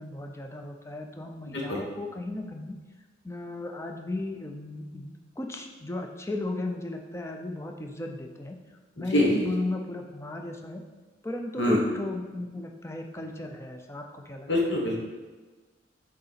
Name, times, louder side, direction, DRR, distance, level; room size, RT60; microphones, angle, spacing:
voice 1, 0.0-2.8 3.2-8.6 9.0-10.8 11.2-14.5, left 2 dB, 15° left, 3 dB, 0.5 m, -35 dB
voice 2, 9.0-9.5 11.6-11.8 14.5-15.0, left 1 dB, 70° left, -2 dB, 1.2 m, -25 dB
6.8 x 3.8 x 4.1 m, 1.3 s
head